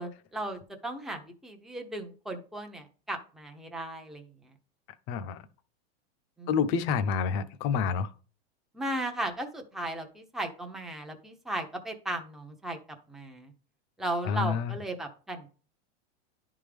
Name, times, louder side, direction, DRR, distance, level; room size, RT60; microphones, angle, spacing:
voice 1, 0.0-4.3 6.4-6.7 8.7-12.8 13.1-13.5 14.0-15.5, right 1 dB, ahead, 0.7 m, -36 dB
voice 2, 5.1-5.4 6.5-8.1 14.3-14.8, left 6 dB, 40° left, 0.7 m, -28 dB
11.0 x 3.6 x 3.4 m
supercardioid pair, 140°, 34 cm